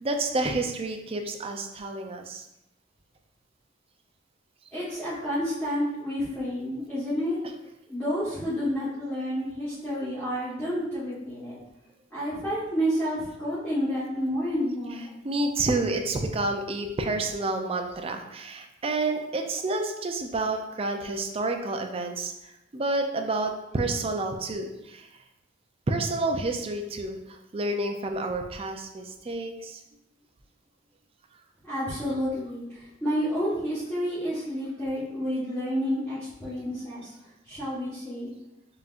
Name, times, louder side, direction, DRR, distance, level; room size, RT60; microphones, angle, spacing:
voice 1, 0.0-2.4 15.2-25.1 25.9-29.8, right 2 dB, 30° right, 4 dB, 0.4 m, -29 dB
voice 2, 4.7-7.4 7.9-11.6 12.1-15.1 31.6-37.1 37.5-38.3, equal, 10° left, -13 dB, 1.2 m, -30 dB
5.6 x 2.8 x 2.4 m, 0.89 s
head